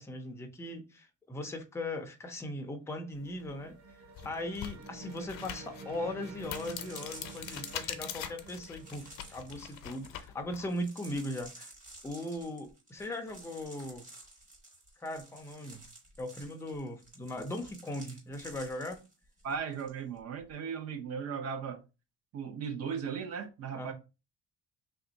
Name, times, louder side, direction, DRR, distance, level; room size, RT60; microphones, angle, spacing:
voice 1, 0.0-3.8 4.2-11.7 12.0-14.0 15.0-15.8 16.2-19.0 23.7-23.9, left 1 dB, 10° left, 0.4 m, -39 dB
sound 1, 2.7-10.3, right 3 dB, 75° right, 1.0 m, -50 dB
sound 2, 3.4-3.5 4.1-10.7, left 10 dB, 90° left, 0.6 m, -43 dB
sound 3, 6.5-19.9 20.2-20.5, right 2 dB, 25° right, 1.3 m, -53 dB
voice 2, 19.4-21.8 22.3-23.9, right 6 dB, 50° right, 0.8 m, -37 dB
3.4 x 2.6 x 3.9 m
cardioid pair, 170°, 32 cm